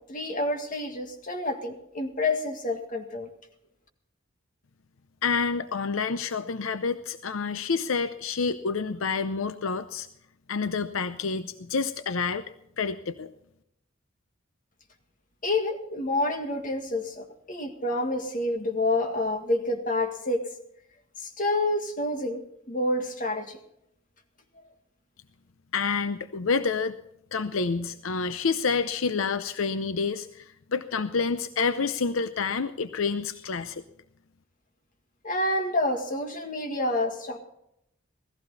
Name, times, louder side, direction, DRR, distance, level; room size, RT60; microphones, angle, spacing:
voice 1, 0.1-3.3 15.4-20.4 21.4-22.4 22.7-23.6 35.2-37.4, left 2 dB, 40° left, 5 dB, 1.9 m, -28 dB
voice 2, 5.2-10.1 10.5-12.4 12.8-13.3 25.7-27.0 27.3-33.8, left 5 dB, 85° left, 12 dB, 0.6 m, -28 dB
17.0 x 15.0 x 4.1 m, 0.78 s
head